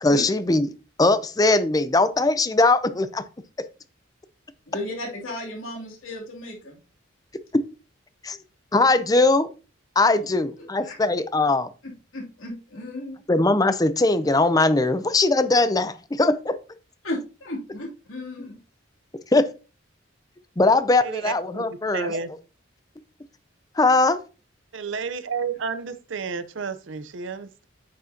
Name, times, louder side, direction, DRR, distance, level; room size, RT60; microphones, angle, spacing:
voice 1, 0.0-0.7 1.0-3.2 8.2-8.4 8.7-9.5 10.0-11.7 13.3-16.6 19.3-19.5 20.6-22.1 23.8-24.2, left 2 dB, 20° left, 0.5 m, -20 dB
voice 2, 4.7-6.8 10.8-10.9 12.1-13.2 17.0-18.6, left 1 dB, 85° left, 2.7 m, -34 dB
voice 3, 21.0-22.3 24.7-27.7, right 5 dB, 65° right, 0.6 m, -31 dB
8.6 x 6.2 x 2.7 m
head